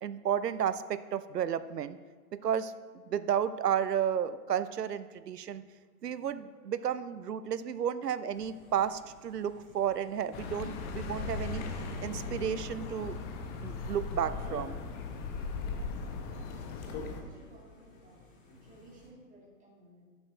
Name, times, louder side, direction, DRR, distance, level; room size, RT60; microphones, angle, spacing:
voice 1, 0.0-2.0 2.3-2.7 3.1-5.6 6.0-11.6 12.0-13.2 13.6-14.8, right 9 dB, 85° right, 14 dB, 0.7 m, -32 dB
sound 1, 8.3-19.1, left 1 dB, 40° left, 3.4 m, -59 dB
Accelerating revving vroom, 10.3-17.2, left 4 dB, 20° left, 0.8 m, -38 dB
voice 2, 16.3-18.2 18.6-20.0, right 1 dB, 15° right, -2 dB, 2.1 m, -57 dB
11.5 x 9.1 x 3.3 m, 1.5 s
hypercardioid pair, 125°, 47 cm